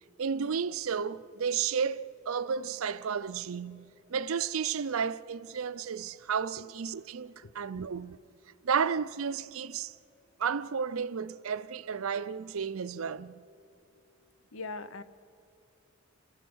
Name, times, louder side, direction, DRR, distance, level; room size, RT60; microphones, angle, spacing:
voice 1, 0.2-8.2 8.6-9.9 10.4-13.4, right 6 dB, 80° right, 0.5 m, -32 dB
voice 2, 14.5-15.0, left 3 dB, 70° left, 0.8 m, -39 dB
29.0 x 16.0 x 6.2 m
head